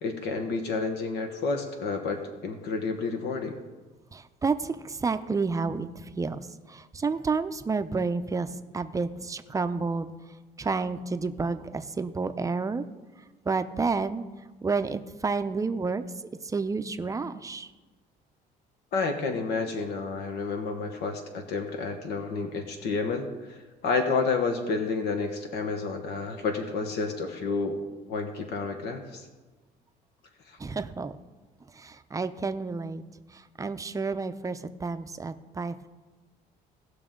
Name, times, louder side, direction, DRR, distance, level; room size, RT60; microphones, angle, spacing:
voice 1, 0.0-3.6 18.9-27.8 28.1-29.3 30.5-30.6, left 4 dB, 80° left, 5 dB, 1.2 m, -30 dB
voice 2, 4.1-6.4 6.7-10.1 10.6-12.8 13.5-14.2 14.6-16.0 16.4-17.7 30.6-31.2 31.7-33.0 33.3-35.9, right 4 dB, 20° right, 10 dB, 0.5 m, -30 dB
18.0 x 6.0 x 3.8 m, 1.2 s
cardioid pair, 110°, 17 cm